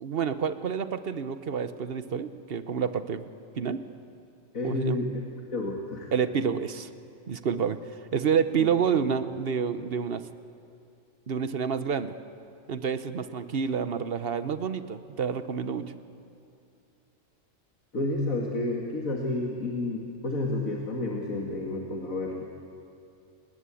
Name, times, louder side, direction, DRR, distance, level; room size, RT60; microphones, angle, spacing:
voice 1, 0.0-3.2 3.6-3.8 4.6-5.0 6.1-6.9 7.3-7.8 8.1-10.2 11.3-12.1 12.7-15.8, right 7 dB, 50° right, 11 dB, 1.1 m, -28 dB
voice 2, 4.5-6.1 8.6-8.7 17.9-22.5, left 2 dB, 85° left, -1 dB, 2.5 m, -30 dB
29.5 x 19.0 x 8.5 m, 2.6 s
omnidirectional pair, 1.4 m